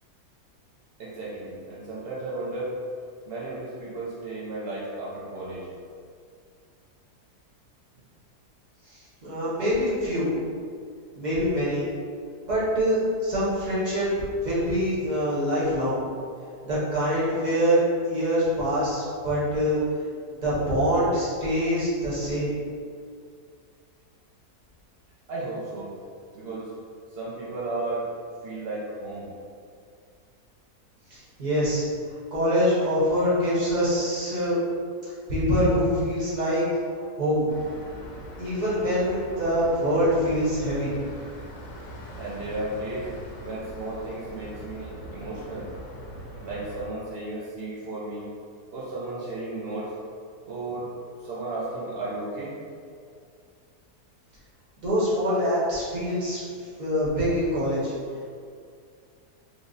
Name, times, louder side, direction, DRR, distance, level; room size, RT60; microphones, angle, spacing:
voice 1, 1.0-2.8 3.3-5.7 25.3-25.9 26.3-26.8 27.1-28.1 28.4-29.3 42.2-43.1 43.4-45.7 46.4-48.3 48.7-49.9 50.5-50.9 51.2-52.6, right 2 dB, 75° right, -7 dB, 0.5 m, -34 dB
voice 2, 8.9-10.3 11.2-11.9 12.5-14.1 14.4-16.0 16.6-17.8 18.1-19.8 20.4-22.5 31.1-31.8 32.3-34.6 35.0-36.6 37.2-37.5 38.4-40.9 54.8-56.4 56.8-57.9, equal, 35° right, -9 dB, 1.0 m, -24 dB
sound 1, 37.5-46.9, equal, 65° left, 0.9 m, -41 dB
3.3 x 2.0 x 3.9 m, 2.2 s
omnidirectional pair, 1.7 m